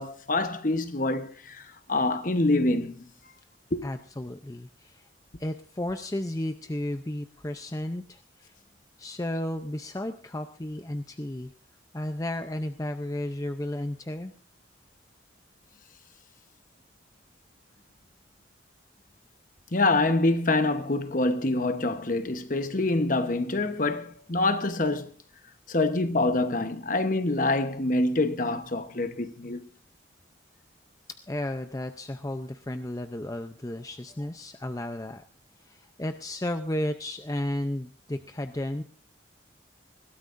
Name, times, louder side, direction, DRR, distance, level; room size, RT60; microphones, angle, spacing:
voice 1, 0.0-3.0 3.7-3.9 19.7-25.1 25.7-29.6, left 2 dB, 45° left, 1.0 m, -26 dB
voice 2, 3.8-5.1 5.4-8.5 9.0-11.5 11.9-14.3 31.1-35.2 35.6-38.8, left 1 dB, 15° left, 0.6 m, -33 dB
21.5 x 16.5 x 2.6 m
head